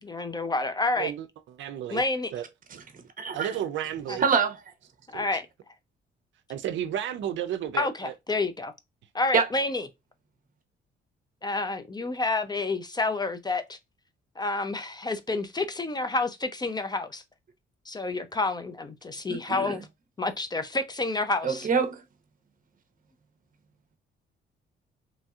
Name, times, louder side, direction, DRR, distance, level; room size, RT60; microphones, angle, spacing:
voice 1, 0.0-1.1 1.9-2.3 4.1-4.2 5.1-5.4 7.7-8.7 9.1-9.9 11.4-13.8 14.4-17.2 17.9-19.9 20.2-21.7, left 3 dB, 20° left, 0.4 m, -29 dB
voice 2, 1.6-2.0 2.3-2.4 2.7-2.8 3.3-4.2 5.1-5.4 6.5-8.1, right 10 dB, 70° right, 0.5 m, -32 dB
voice 3, 3.2-3.5 4.2-4.6 9.3-9.5 19.3-19.8 21.4-22.0, right 6 dB, 45° right, 0.8 m, -25 dB
3.0 x 2.7 x 2.3 m
cardioid pair, 90°, 20 cm